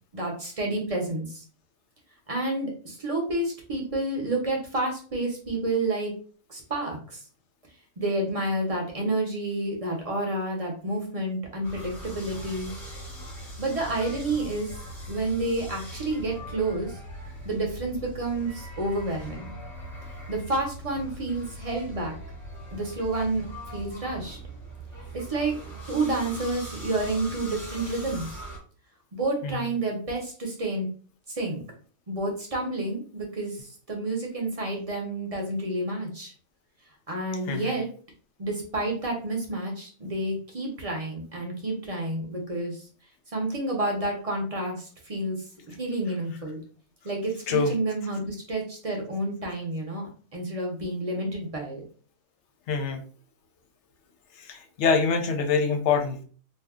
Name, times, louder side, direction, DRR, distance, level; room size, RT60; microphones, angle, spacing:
voice 1, 0.1-1.4 2.3-6.1 6.5-7.2 8.0-12.7 13.6-14.8 15.1-17.0 17.4-19.6 20.3-22.2 22.7-24.4 25.1-25.5 25.9-28.4 29.1-30.9 31.3-31.6 32.1-36.3 37.1-37.9 38.4-42.8 43.3-46.6 47.0-51.8, right 2 dB, 35° right, 0 dB, 0.6 m, -29 dB
sound 1, 11.6-28.6, right 1 dB, ahead, 1.0 m, -40 dB
voice 2, 52.7-53.0 54.4-56.2, left 5 dB, 65° left, 6 dB, 0.8 m, -25 dB
2.6 x 2.2 x 3.5 m, 0.41 s
omnidirectional pair, 1.5 m